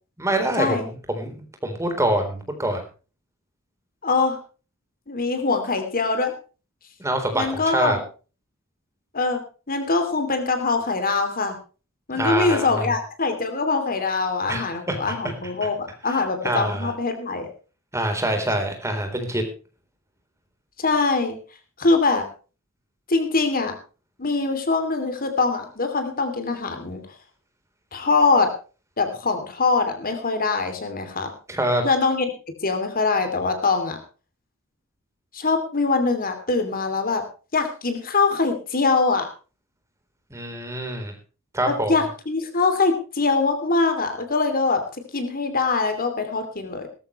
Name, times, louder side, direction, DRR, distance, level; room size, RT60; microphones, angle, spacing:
voice 1, 0.2-2.8 7.0-8.0 12.1-12.9 14.5-15.2 16.1-16.9 17.9-19.4 31.5-31.8 40.3-41.1 41.5-41.9, right 1 dB, 15° right, 5 dB, 3.9 m, -25 dB
voice 2, 4.0-4.4 5.1-6.3 7.3-7.9 9.1-9.4 9.7-11.6 12.1-17.5 20.8-21.4 21.8-22.2 23.1-23.8 24.2-27.0 27.9-28.5 29.0-31.3 31.8-32.3 32.6-34.0 35.3-37.2 37.5-39.3 41.7-44.8 45.1-46.9, left 3 dB, 45° left, 7 dB, 2.9 m, -23 dB
18.5 x 14.0 x 3.2 m, 0.35 s
head